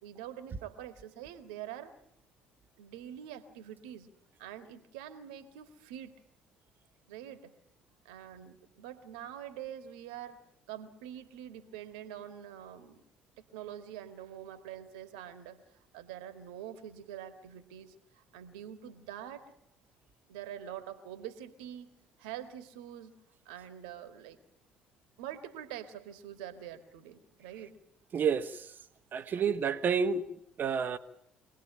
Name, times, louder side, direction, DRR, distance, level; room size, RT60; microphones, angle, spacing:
voice 1, 0.0-1.9 2.8-4.1 4.4-6.2 7.1-7.5 8.1-10.4 10.7-13.0 13.4-15.6 15.9-19.5 20.3-21.9 22.2-23.1 23.5-24.4 25.2-27.8 29.2-29.6, right 10 dB, 70° right, 2.0 m, -45 dB
voice 2, 28.1-28.7 29.1-30.2 30.6-31.0, right 6 dB, 45° right, 1.5 m, -29 dB
25.0 x 19.0 x 8.8 m
figure-of-eight pair, 50°, 5 cm